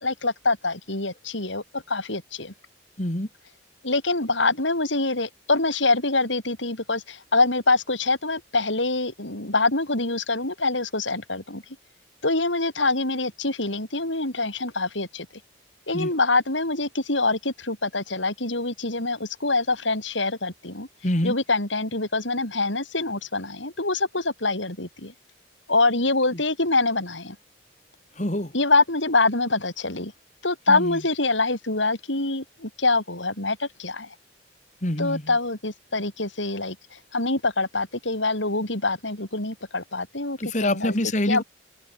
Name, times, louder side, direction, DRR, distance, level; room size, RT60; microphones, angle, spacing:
voice 1, 0.0-2.5 3.8-11.6 12.2-15.3 15.9-20.9 21.2-25.1 25.7-27.4 28.5-30.1 30.4-34.1 35.0-41.0 41.3-41.4, left 3 dB, 80° left, 7.6 m, -25 dB
voice 2, 3.0-3.3 15.9-16.1 21.0-21.4 26.3-26.4 28.2-28.5 30.7-31.0 34.8-35.3 40.4-41.4, left 1 dB, 40° left, 2.8 m, -26 dB
open air
head